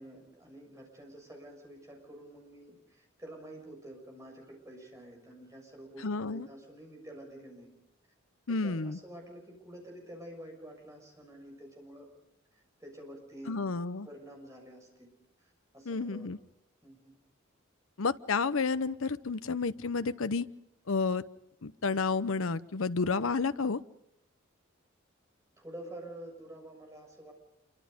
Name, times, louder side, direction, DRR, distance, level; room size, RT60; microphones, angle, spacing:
voice 1, 0.0-7.7 8.5-12.1 12.5-13.6 14.0-15.1 15.4-16.3 16.8-17.1 25.6-27.3, right 1 dB, 15° right, 1 dB, 6.7 m, -49 dB
voice 2, 6.0-6.5 8.5-9.0 13.5-14.1 15.9-16.4 18.0-20.5 20.9-21.2 21.6-23.8, left 4 dB, 75° left, 14 dB, 0.8 m, -31 dB
27.0 x 24.5 x 5.2 m, 0.85 s
head